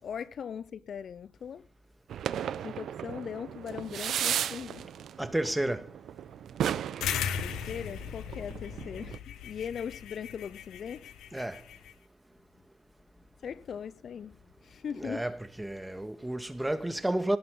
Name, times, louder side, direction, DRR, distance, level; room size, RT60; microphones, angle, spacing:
voice 1, 0.0-1.6 2.6-4.9 7.2-11.1 13.4-15.3, left 7 dB, 55° left, 0.7 m, -40 dB
sound 1, 2.1-9.2, right 9 dB, 60° right, 0.8 m, -35 dB
voice 2, 5.2-6.0 11.3-11.6 15.0-17.4, right 1 dB, 10° right, 2.2 m, -31 dB
sound 2, 7.0-11.9, left 9 dB, 70° left, 1.9 m, -37 dB
19.0 x 11.0 x 4.0 m
hypercardioid pair, 50°, 0 cm